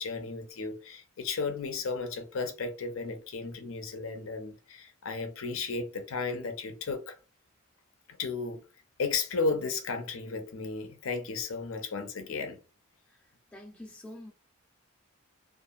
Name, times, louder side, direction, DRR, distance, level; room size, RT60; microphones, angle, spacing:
voice 1, 0.0-7.2 8.2-8.6 9.0-12.6, left 4 dB, 65° left, 0.5 m, -34 dB
voice 2, 13.5-14.3, left 1 dB, 5° left, 0.6 m, -46 dB
2.7 x 2.4 x 2.4 m
head